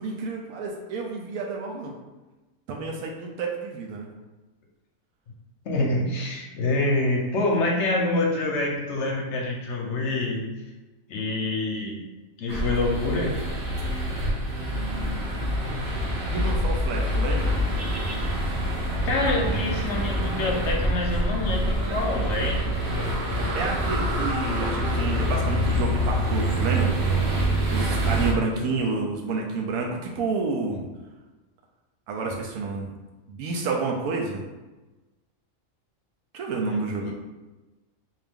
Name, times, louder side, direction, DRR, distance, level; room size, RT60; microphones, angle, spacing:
voice 1, 0.0-1.9 2.7-4.1 14.7-15.2 16.2-17.6 23.5-26.9 27.7-30.8 32.1-32.9 33.3-34.4 36.3-37.1, right 4 dB, 85° right, 0 dB, 1.0 m, -29 dB
voice 2, 5.7-10.4 11.1-12.0 12.4-13.4 19.0-22.6 28.5-28.8 36.7-37.1, left 2 dB, 65° left, 0 dB, 0.9 m, -26 dB
sound 1, 12.5-28.3, equal, 50° right, 1.0 m, -26 dB
3.6 x 2.8 x 3.5 m, 1.1 s
omnidirectional pair, 1.5 m